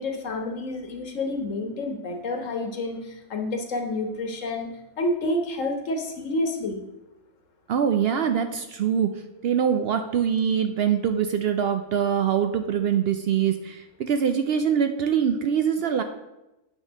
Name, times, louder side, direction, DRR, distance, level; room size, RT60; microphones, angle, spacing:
voice 1, 0.0-4.7 5.0-6.8, left 2 dB, 60° left, 4 dB, 1.4 m, -29 dB
voice 2, 7.7-16.0, right 8 dB, 75° right, 8 dB, 0.5 m, -24 dB
8.8 x 3.8 x 6.1 m, 0.97 s
omnidirectional pair, 1.6 m